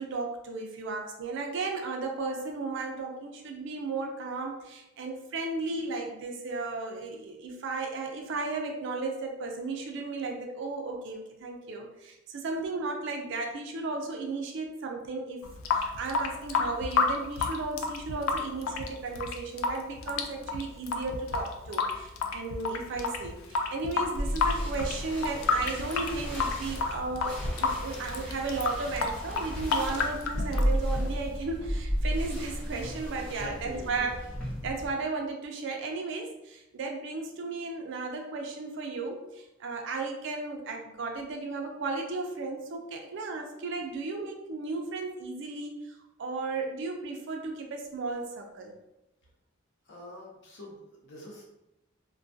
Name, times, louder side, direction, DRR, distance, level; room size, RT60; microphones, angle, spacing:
voice 1, 0.0-15.4 15.7-34.2 34.6-48.7, right 3 dB, 65° right, 2 dB, 0.4 m, -35 dB
Water tap faucet / Sink (filling or washing) / Drip, 15.4-31.4, left 4 dB, 85° left, 0.3 m, -31 dB
sound 1, 24.2-34.9, equal, 5° left, 0.7 m, -34 dB
voice 2, 33.4-33.9 49.9-51.4, left 1 dB, 60° left, -3 dB, 0.7 m, -44 dB
2.2 x 2.2 x 2.5 m, 0.89 s
head